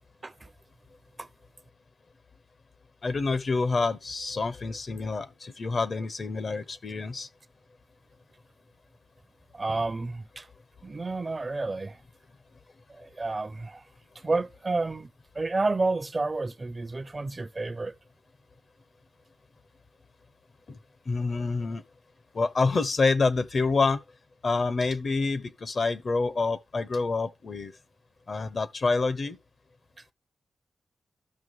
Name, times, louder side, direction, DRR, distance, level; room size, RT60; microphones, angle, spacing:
voice 1, 3.0-7.3 20.7-20.8 21.1-21.8 22.3-24.0 24.4-27.7 28.3-29.4, left 3 dB, 50° left, 0.9 m, -27 dB
voice 2, 9.5-10.5 10.8-12.0 12.9-13.8 14.2-15.1 15.3-17.9, right 3 dB, 35° right, 0.6 m, -30 dB
13.0 x 6.0 x 3.1 m
cardioid pair, 75°, 0 cm